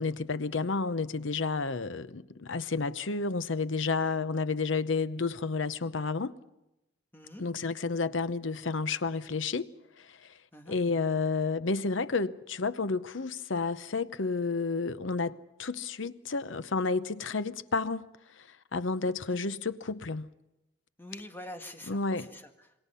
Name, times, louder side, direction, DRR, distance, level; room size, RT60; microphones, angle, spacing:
voice 1, 0.0-6.4 7.4-9.7 10.0-10.3 10.7-18.1 18.4-18.5 18.7-20.3 21.9-22.3, left 4 dB, 80° left, 0.8 m, -31 dB
voice 2, 7.1-7.5 10.5-10.8 21.0-22.7, left 1 dB, 10° left, 1.7 m, -46 dB
26.5 x 22.5 x 5.6 m
head